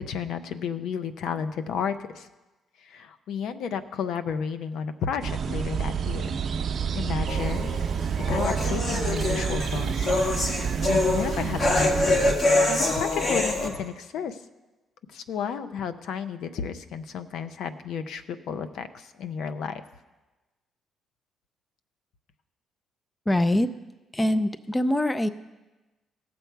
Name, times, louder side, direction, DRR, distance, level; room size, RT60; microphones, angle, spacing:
voice 1, 0.0-2.3 2.8-6.4 6.9-7.8 8.3-10.1 10.8-12.3 12.6-14.4 15.1-19.8, left 7 dB, 80° left, 10 dB, 0.6 m, -32 dB
sound 1, 5.2-12.4, right 7 dB, 55° right, 0.7 m, -29 dB
sound 2, 7.3-13.7, left 2 dB, 50° left, 1.9 m, -25 dB
voice 2, 23.3-23.7 24.1-25.3, left 1 dB, 15° left, 13 dB, 0.5 m, -23 dB
18.0 x 7.0 x 4.6 m, 1.1 s
cardioid pair, 90°, 0 cm